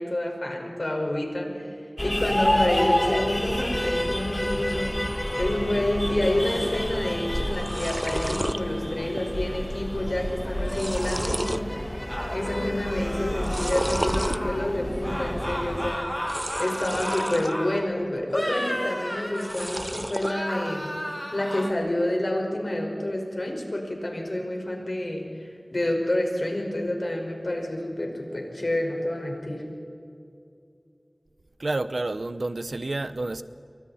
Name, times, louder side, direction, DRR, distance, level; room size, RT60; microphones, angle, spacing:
voice 1, 0.0-5.0 5.4-11.7 12.3-21.1 21.3-29.7, left 1 dB, 60° left, 1 dB, 5.2 m, -28 dB
sound 1, 2.0-15.9, left 1 dB, 25° left, 2.0 m, -29 dB
sound 2, 7.1-7.2 7.4-8.6 9.1-9.5 9.7-9.8 10.4-11.7 12.1-12.6 13.3-14.4 16.2-17.5 17.9-18.6 19.3-20.3, right 1 dB, 20° right, 0.6 m, -32 dB
sound 3, 12.1-14.7 15.0-17.9 18.3-19.9 20.2-21.7, equal, 10° left, 2.1 m, -33 dB
voice 2, 31.6-33.4, right 2 dB, 85° right, 12 dB, 0.9 m, -29 dB
29.0 x 24.0 x 4.3 m, 2.6 s
wide cardioid pair, 45°, 0 cm